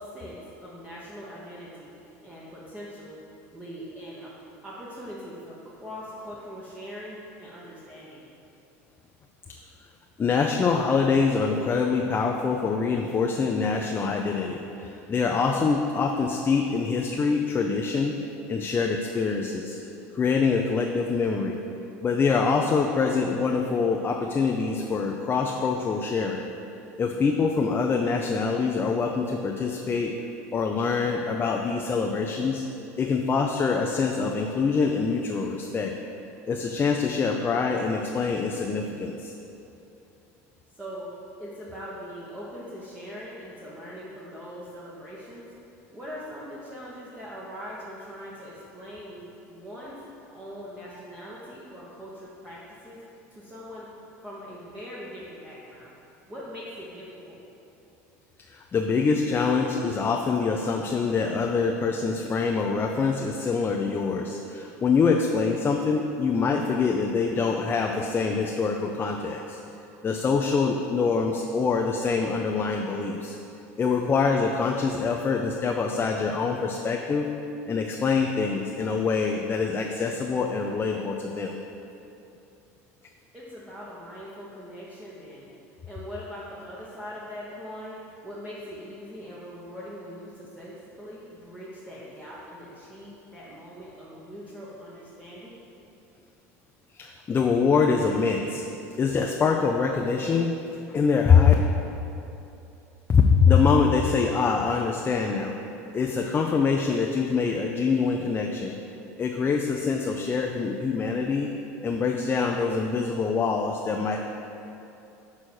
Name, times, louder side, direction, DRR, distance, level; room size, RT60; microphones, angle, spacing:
voice 1, 0.0-1.9 2.2-3.2 3.5-4.3 4.6-8.2 40.7-41.1 41.4-45.5 45.9-49.2 49.5-50.0 50.3-53.0 53.3-53.9 54.2-55.9 56.3-57.4 83.3-85.5 85.9-95.5, equal, 15° right, -7 dB, 1.2 m, -41 dB
voice 2, 10.2-18.2 18.5-19.8 20.1-21.6 22.0-26.4 27.0-30.1 30.5-32.6 33.0-35.9 36.5-39.3 58.5-69.6 70.0-73.4 73.8-77.3 77.7-81.6 96.9-98.7 99.0-100.5 100.9-101.5 103.1-105.6 105.9-108.7 109.2-111.5 111.8-114.2, left 5 dB, 25° left, 1 dB, 0.5 m, -24 dB
6.3 x 4.2 x 6.3 m, 2.9 s
supercardioid pair, 100°, 8 cm